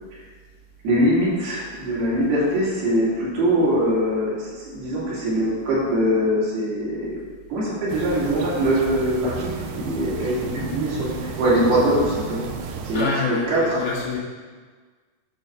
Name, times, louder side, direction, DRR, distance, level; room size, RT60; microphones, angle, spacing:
voice 1, 0.8-7.1 7.5-12.5 12.8-13.8, equal, 65° right, -8 dB, 4.4 m, -22 dB
sound 1, 7.9-13.1, right 6 dB, 80° right, 2.6 m, -33 dB
voice 2, 12.9-14.2, left 4 dB, 70° left, -5 dB, 3.6 m, -26 dB
10.5 x 4.0 x 6.7 m, 1.5 s
omnidirectional pair, 4.9 m